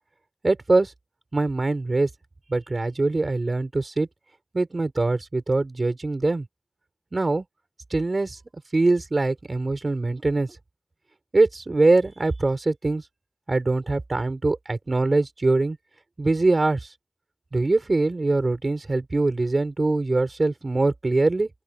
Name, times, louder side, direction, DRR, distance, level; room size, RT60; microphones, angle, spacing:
voice 1, 0.4-0.9 1.3-2.1 2.5-4.1 4.5-6.4 7.1-7.4 7.9-8.4 8.7-10.5 11.3-13.0 13.5-15.8 16.2-16.8 17.5-21.5, right 2 dB, 60° right, 4.9 m, -23 dB
open air
wide cardioid pair, 55°, 0 cm